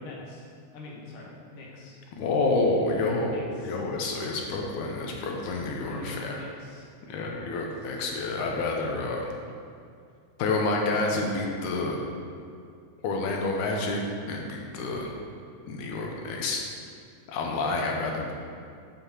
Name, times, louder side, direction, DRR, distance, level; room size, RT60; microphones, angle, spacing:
voice 1, 0.0-2.0 3.0-3.8 5.9-7.9, left 2 dB, 60° left, -3 dB, 1.8 m, -43 dB
voice 2, 2.1-6.4 7.1-9.3 10.4-12.0 13.0-14.0 14.3-15.1 15.7-16.6 17.3-18.3, left 3 dB, 90° left, 0 dB, 2.2 m, -28 dB
7.4 x 7.2 x 2.9 m, 2.3 s
omnidirectional pair, 3.5 m